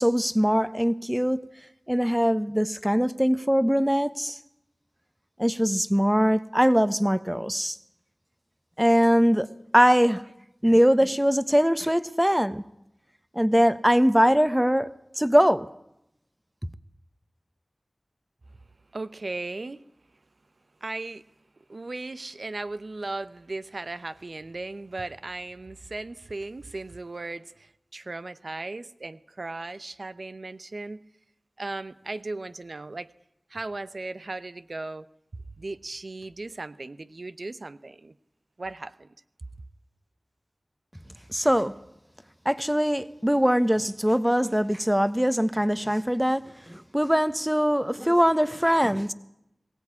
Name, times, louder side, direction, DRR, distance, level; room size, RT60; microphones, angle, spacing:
voice 1, 0.0-1.4 1.9-4.4 5.4-7.8 8.8-9.5 9.7-10.2 10.6-12.6 13.3-14.9 15.2-15.7 41.3-41.7 42.4-49.1, equal, 5° right, 1.2 m, -22 dB
voice 2, 18.9-19.8 20.8-21.2 21.7-31.0 31.6-33.1 33.5-35.1 35.3-38.1 38.6-39.1, right 2 dB, 70° right, 0.8 m, -37 dB
22.5 x 17.0 x 9.7 m
wide cardioid pair, 45°, 0 cm